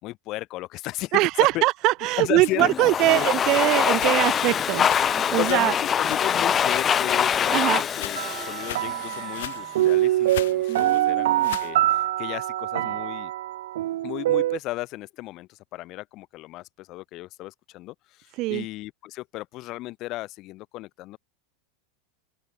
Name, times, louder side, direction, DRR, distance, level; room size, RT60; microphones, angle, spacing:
voice 1, 0.0-1.2 1.5-1.6 2.2-3.3 5.4-13.3 14.0-21.2, left 18 dB, 50° left, 3.8 m, -34 dB
voice 2, 1.1-5.7 7.5-7.8 10.7-11.6 18.4-18.6, right 20 dB, 50° right, 0.5 m, -23 dB
sound 1, 2.0-6.5 6.8-11.8, left 14 dB, 75° left, 2.6 m, -41 dB
Domestic sounds home sounds, 2.6-9.5, left 8 dB, 30° left, 1.8 m, -24 dB
sound 2, 8.1-14.6, right 14 dB, 75° right, 0.9 m, -24 dB
open air
hypercardioid pair, 105°, 0 cm